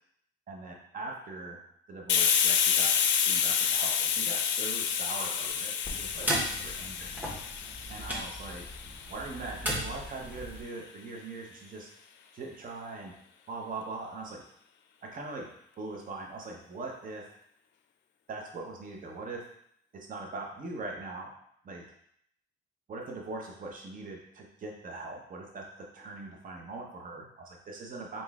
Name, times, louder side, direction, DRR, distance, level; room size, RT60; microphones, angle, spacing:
voice 1, 0.5-1.6 1.9-7.2 7.9-8.7 9.1-11.9 12.3-13.1 13.5-14.4 15.0-15.5 15.8-17.3 18.3-19.4 19.9-21.3 21.6-21.8 22.9-28.2, right 3 dB, 45° right, 1 dB, 0.8 m, -41 dB
Hiss, 2.1-9.5, left 8 dB, 65° left, 0.4 m, -29 dB
sound 1, 5.8-10.6, equal, 10° right, 1.1 m, -36 dB
3.9 x 3.7 x 2.4 m, 0.70 s
cardioid pair, 90°, 20 cm